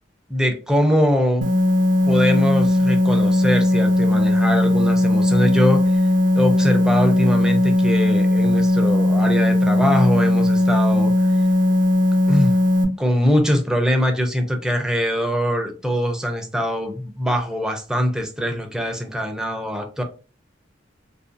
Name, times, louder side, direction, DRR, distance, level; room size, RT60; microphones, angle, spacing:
voice 1, 0.3-1.5 2.0-5.9 6.3-11.1 12.3-12.5 13.0-20.0, equal, 5° right, 0.4 m, -22 dB
sound 1, 1.4-12.8, left 1 dB, 75° right, 0.5 m, -18 dB
2.5 x 2.2 x 2.5 m
head